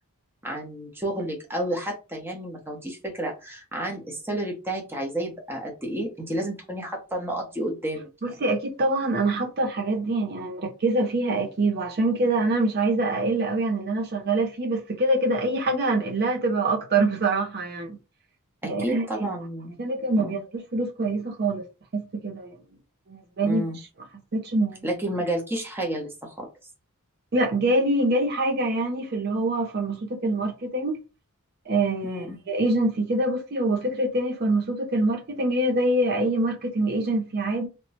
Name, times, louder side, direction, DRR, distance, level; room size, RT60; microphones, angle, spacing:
voice 1, 0.4-8.3 18.6-19.8 20.1-20.4 23.4-23.8 24.8-26.5 32.0-32.4, right 1 dB, 10° right, 0.9 m, -31 dB
voice 2, 8.2-18.0 18.6-19.3 19.8-21.6 21.9-22.6 23.1-23.9 24.3-24.8 27.3-31.0 31.7-37.7, right 2 dB, 45° right, 0.6 m, -25 dB
2.9 x 2.2 x 4.0 m
head